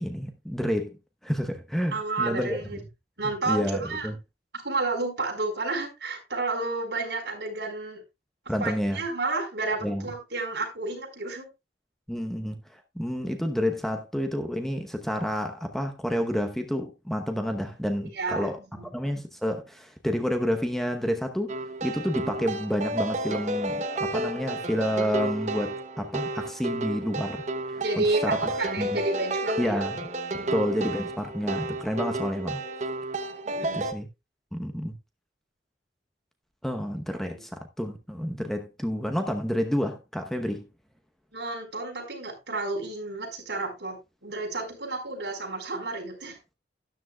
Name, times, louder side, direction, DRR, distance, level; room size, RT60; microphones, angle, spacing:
voice 1, 0.0-2.6 3.5-4.2 8.5-9.0 9.8-10.1 12.1-18.6 18.9-21.6 21.8-28.4 28.8-29.0 29.6-30.1 30.3-32.6 33.7-34.1 34.5-35.0 36.6-40.7, equal, ahead, 0.9 m, -29 dB
voice 2, 1.9-2.8 3.2-4.1 4.5-8.0 8.6-11.5 18.1-18.9 27.8-29.8 30.4-30.6 33.4-33.9 37.3-37.4 41.3-46.4, right 3 dB, 70° right, 4.6 m, -31 dB
sound 1, 21.5-33.9, right 2 dB, 40° right, 0.9 m, -31 dB
12.5 x 10.5 x 2.3 m
head